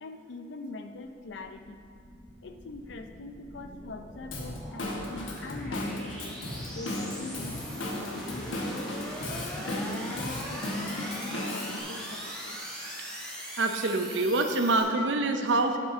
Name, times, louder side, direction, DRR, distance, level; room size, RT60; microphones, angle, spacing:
voice 1, 0.0-1.8 2.4-6.1 6.7-9.0 9.6-10.6 10.9-12.6 15.0-15.1, left 2 dB, 65° left, 7 dB, 0.5 m, -43 dB
sound 1, 1.0-14.8, equal, 5° left, 1.3 m, -41 dB
Drum kit / Drum, 4.3-11.8, left 1 dB, 85° left, 1.2 m, -35 dB
voice 2, 13.6-15.8, right 2 dB, 70° right, 6 dB, 0.6 m, -26 dB
8.7 x 7.5 x 3.7 m, 2.2 s
head